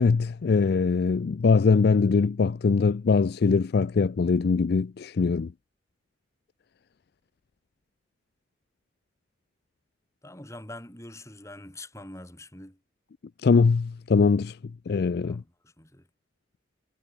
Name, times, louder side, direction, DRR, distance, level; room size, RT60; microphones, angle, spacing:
voice 1, 0.0-5.5 13.4-14.6 14.9-15.4, left 4 dB, 55° left, 0.4 m, -22 dB
voice 2, 10.2-12.8 15.2-16.1, left 1 dB, 15° left, 3.7 m, -44 dB
head